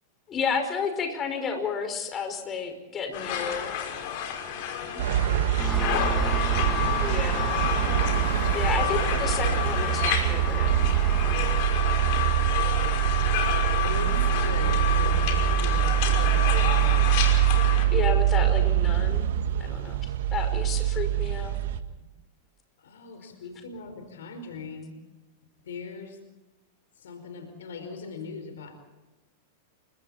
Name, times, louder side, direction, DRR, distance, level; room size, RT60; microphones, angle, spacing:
voice 1, 0.3-3.8 7.0-7.7 8.5-10.7 17.9-19.3 19.6-20.0 20.3-21.6, left 6 dB, 30° left, 6 dB, 5.3 m, -31 dB
sound 1, 3.1-17.9, left 9 dB, 55° left, 5.5 m, -30 dB
voice 2, 4.5-7.1 13.8-17.1 22.0-22.1 22.8-25.0 25.6-26.2 26.9-28.8, left 4 dB, 70° left, 8 dB, 4.7 m, -41 dB
sound 2, 5.0-21.8, right 12 dB, 65° right, 1.6 m, -24 dB
Engine, 5.6-11.6, left 2 dB, 10° left, 2.0 m, -36 dB
29.5 x 24.5 x 4.3 m, 1.1 s
hypercardioid pair, 95°, 0 cm